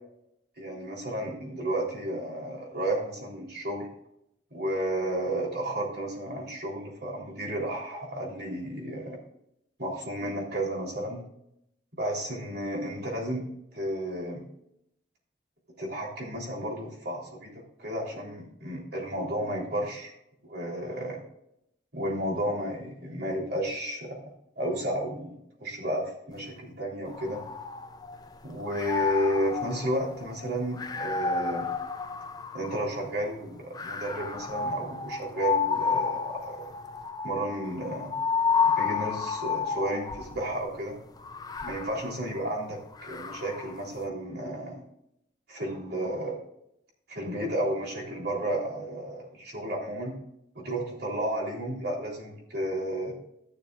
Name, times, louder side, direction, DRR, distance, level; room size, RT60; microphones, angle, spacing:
voice 1, 0.6-3.9 4.5-9.2 9.8-11.2 12.0-13.4 13.7-14.4 15.8-17.5 17.8-20.1 20.4-21.2 21.9-24.2 24.6-27.4 28.4-31.7 32.5-36.7 37.2-38.1 38.6-41.0 41.6-44.8 45.5-46.4 47.1-50.1 50.6-53.1, right 1 dB, 60° right, -2 dB, 3.5 m, -32 dB
sound 1, 27.1-28.3 28.7-33.1 33.7-40.4 41.2-43.8, left 5 dB, 20° left, 0.5 m, -31 dB
15.5 x 6.7 x 2.5 m, 0.78 s
head